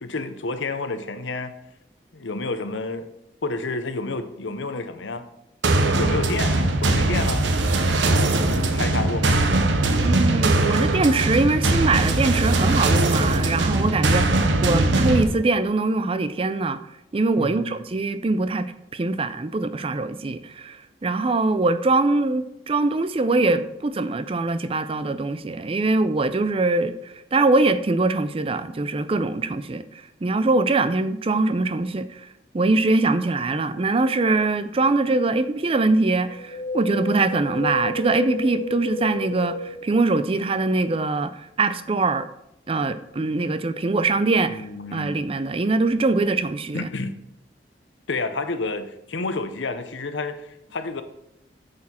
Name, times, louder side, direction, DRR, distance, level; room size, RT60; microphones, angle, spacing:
voice 1, 0.0-1.5 2.1-3.1 3.4-5.2 5.9-7.5 8.2-9.4 17.4-17.7 44.5-45.3 46.7-47.1 48.1-51.0, left 3 dB, 85° left, 0.8 m, -30 dB
sound 1, 5.6-15.2, right 2 dB, 80° right, 0.8 m, -20 dB
voice 2, 10.0-16.8 17.1-29.8 30.2-32.2 32.5-42.3 42.7-44.6 44.9-46.9, right 3 dB, 30° right, 0.4 m, -23 dB
Wind, 36.3-40.6 40.9-41.0, left 3 dB, 35° left, 0.4 m, -32 dB
8.5 x 6.4 x 4.3 m
head